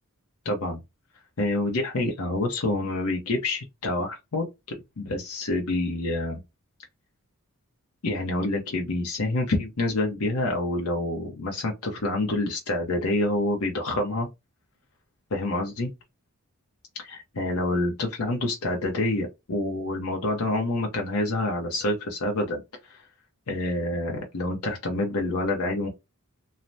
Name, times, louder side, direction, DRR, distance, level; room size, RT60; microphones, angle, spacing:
voice 1, 0.4-0.8 1.4-4.5 5.0-6.4 8.0-14.3 15.3-15.9 17.0-23.0 23.5-25.9, left 2 dB, 75° left, 0.7 m, -27 dB
3.2 x 2.1 x 2.6 m
head